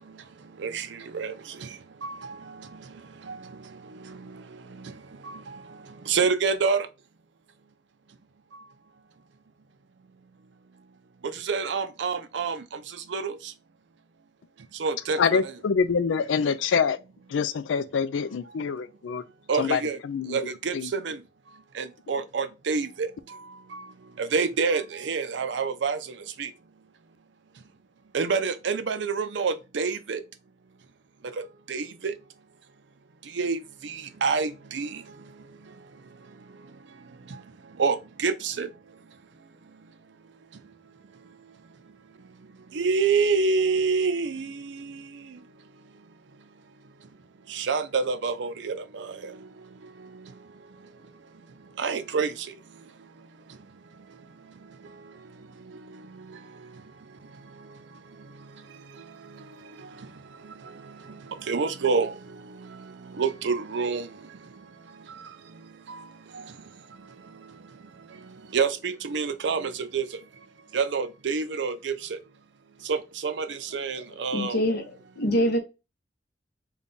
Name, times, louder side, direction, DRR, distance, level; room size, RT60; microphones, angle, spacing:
voice 1, 0.6-1.7 2.0-2.7 3.2-3.5 3.9-4.4 4.7-4.9 5.2-5.6 6.0-6.9 11.2-13.5 14.8-15.6 19.5-20.0 20.3-21.2 21.7-23.4 23.7-23.9 24.2-26.0 26.4-26.5 28.1-30.2 31.7-32.1 33.3-35.0 37.3-37.4 37.8-38.7 42.7-45.4 47.5-49.4 50.0-50.3 51.8-52.5 55.7-56.4 59.0-59.4 59.8-60.1 60.4-64.1 65.1-65.3 65.9-66.1 66.3-66.4 68.2-70.1 70.7-72.2 72.8-74.6, right 5 dB, 65° right, 0.5 m, -28 dB
voice 2, 15.2-17.0 17.3-19.2 19.6-19.8 20.1-20.4 20.7-20.9, left 6 dB, 90° left, 0.4 m, -25 dB
voice 3, 74.3-74.9 75.2-75.6, equal, 55° left, 0.8 m, -24 dB
3.6 x 2.3 x 3.8 m
head